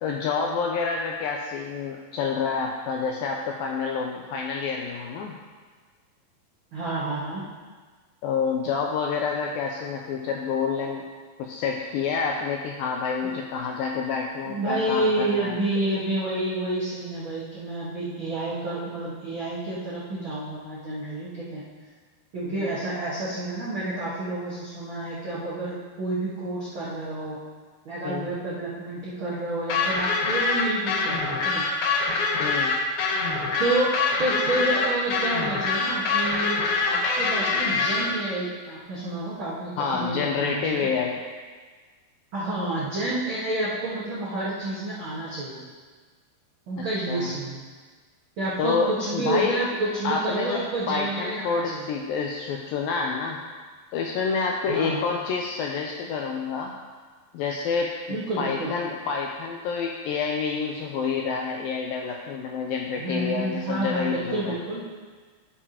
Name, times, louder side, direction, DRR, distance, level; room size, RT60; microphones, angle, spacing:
voice 1, 0.0-5.3 8.2-11.1 11.4-15.6 22.5-22.7 28.0-28.3 32.4-32.8 39.8-41.2 46.8-47.3 48.6-49.6 50.0-53.4 53.9-56.7 57.3-64.6, left 5 dB, 90° left, 1 dB, 2.0 m, -28 dB
voice 2, 6.7-7.4 14.4-21.6 22.3-27.4 27.8-31.7 33.6-36.6 36.8-40.9 42.3-45.6 46.7-47.6 48.4-51.9 54.7-55.0 58.1-58.7 63.0-64.8, right 2 dB, 85° right, -9 dB, 1.1 m, -29 dB
sound 1, 29.7-38.1, left 4 dB, 70° left, 2.8 m, -24 dB
12.0 x 6.8 x 2.9 m, 1.5 s
omnidirectional pair, 4.6 m